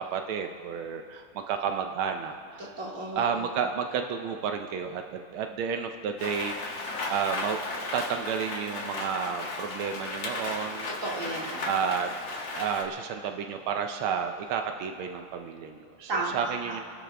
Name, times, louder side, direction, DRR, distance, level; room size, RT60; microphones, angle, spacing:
voice 1, 0.0-2.7 3.1-10.9 11.7-12.1 12.5-16.8, right 7 dB, 85° right, 5 dB, 1.6 m, -31 dB
voice 2, 2.6-3.3 11.0-11.7 16.1-16.8, right 2 dB, 40° right, -2 dB, 2.6 m, -33 dB
Rain, 6.2-12.8, left 3 dB, 65° left, 2.3 m, -35 dB
29.5 x 12.5 x 3.4 m, 2.2 s
omnidirectional pair, 2.3 m